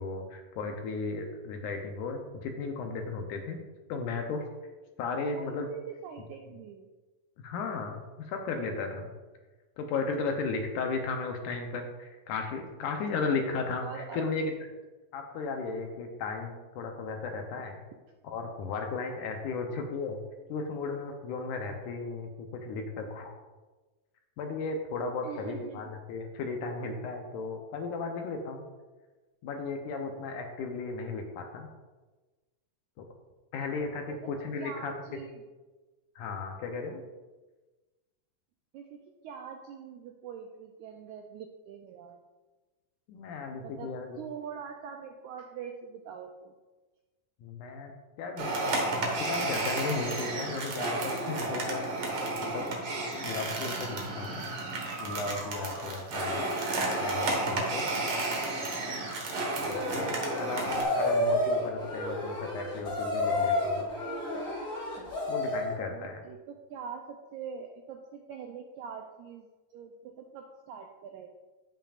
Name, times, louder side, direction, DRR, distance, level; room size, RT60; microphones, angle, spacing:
voice 1, 0.0-3.6 3.9-4.4 5.0-5.7 7.4-9.1 9.8-14.5 15.1-17.8 18.2-20.2 20.5-23.3 24.4-28.6 29.4-31.7 33.0-33.1 33.5-34.9 36.2-37.0 43.1-44.2 47.4-47.9 48.2-48.7 49.2-51.8 52.4-52.7 53.2-54.4 55.0-56.5 57.0-57.8 59.7-63.9 65.3-66.2, left 4 dB, 75° left, 4 dB, 2.0 m, -35 dB
voice 2, 5.3-6.9 13.8-14.3 25.2-25.9 34.1-34.3 34.6-35.4 38.7-42.2 43.6-46.5 65.9-69.5 69.7-71.3, right 7 dB, 90° right, 3 dB, 1.7 m, -43 dB
sound 1, 48.4-60.8, right 2 dB, 55° right, 1.7 m, -32 dB
sound 2, 59.6-65.8, left 1 dB, 35° left, 2.2 m, -30 dB
14.0 x 5.6 x 2.4 m, 1.2 s
omnidirectional pair, 4.0 m